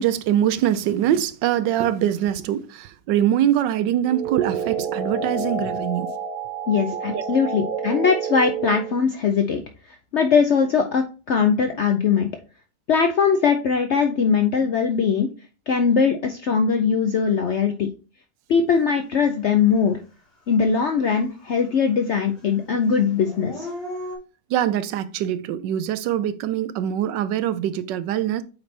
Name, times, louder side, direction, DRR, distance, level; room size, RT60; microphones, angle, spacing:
voice 1, 0.0-6.1 7.1-7.2 24.5-28.4, right 11 dB, 90° right, 1.3 m, -23 dB
sound 1, 4.0-9.0, right 5 dB, 35° right, 1.2 m, -29 dB
voice 2, 6.7-9.6 10.1-12.3 12.9-15.3 15.7-17.9 18.5-20.0 20.5-23.7, left 6 dB, 70° left, 0.6 m, -20 dB
Dog / Siren, 19.8-19.9 20.4-21.8 22.1-24.2, left 1 dB, 90° left, 4.3 m, -37 dB
8.4 x 3.3 x 4.3 m
omnidirectional pair, 1.9 m